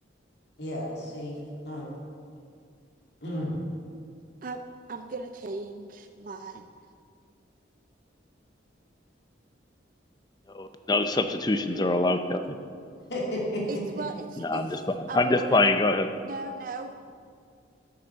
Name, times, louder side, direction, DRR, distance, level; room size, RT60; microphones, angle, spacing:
voice 1, 0.6-1.4 1.7-1.9 3.2-3.6 13.1-13.8, left 1 dB, 65° left, -3 dB, 2.5 m, -32 dB
voice 2, 4.9-6.7 13.7-14.8 15.1-15.6 16.2-16.9, right 3 dB, 45° right, 6 dB, 0.4 m, -37 dB
voice 3, 10.5-12.4 14.4-16.1, left 2 dB, 20° left, 8 dB, 0.5 m, -25 dB
8.2 x 8.0 x 6.8 m, 2.2 s
head